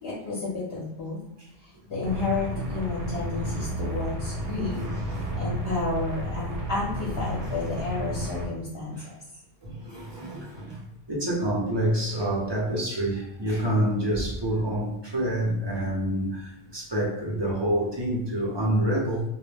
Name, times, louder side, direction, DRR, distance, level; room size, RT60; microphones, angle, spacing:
voice 1, 0.0-1.2 1.9-4.8 5.3-9.0, left 3 dB, 70° left, -7 dB, 0.9 m, -31 dB
sound 1, 2.0-8.5, right 1 dB, 65° right, 0.8 m, -32 dB
voice 2, 3.3-3.7 4.5-5.5 7.4-7.7 9.0-9.1 9.6-10.8 11.1-19.2, right 1 dB, 30° right, -5 dB, 0.6 m, -28 dB
2.2 x 2.1 x 3.2 m, 0.89 s
omnidirectional pair, 1.1 m